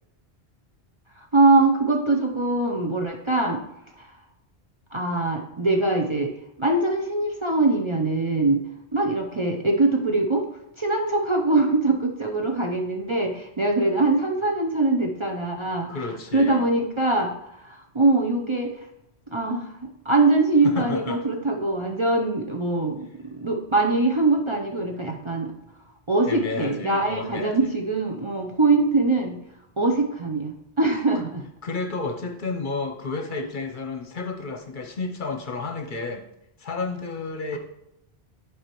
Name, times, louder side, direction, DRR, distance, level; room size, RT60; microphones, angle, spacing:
voice 1, 1.2-3.6 4.0-4.1 4.9-6.3 6.6-8.6 8.9-10.5 10.8-16.0 16.3-18.9 19.3-23.1 23.3-25.5 26.1-29.4 29.8-31.4, right 2 dB, 35° right, 0 dB, 0.6 m, -23 dB
voice 2, 15.9-16.7 20.6-21.2 26.2-27.7 30.9-31.0 31.6-36.2 36.6-37.6, left 3 dB, 50° left, 4 dB, 0.9 m, -31 dB
11.0 x 4.8 x 3.0 m, 0.83 s
omnidirectional pair, 1.1 m